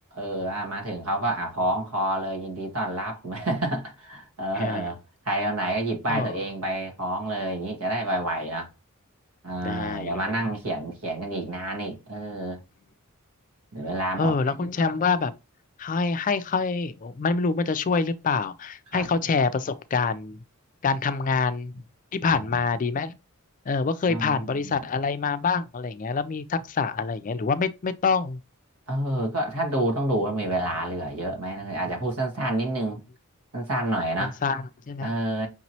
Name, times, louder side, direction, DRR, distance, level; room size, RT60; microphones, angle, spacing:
voice 1, 0.1-5.0 5.2-8.7 9.4-12.6 13.7-14.7 18.9-19.1 22.2-22.6 24.1-24.9 28.9-33.0 33.5-34.4 35.0-35.5, right 1 dB, 90° right, 1.6 m, -29 dB
voice 2, 4.6-4.9 6.1-6.3 9.6-10.2 14.2-15.3 15.8-20.4 20.8-21.7 22.1-23.2 23.7-28.4 34.4-35.1, left 4 dB, 35° left, 0.4 m, -26 dB
5.9 x 3.0 x 2.7 m
head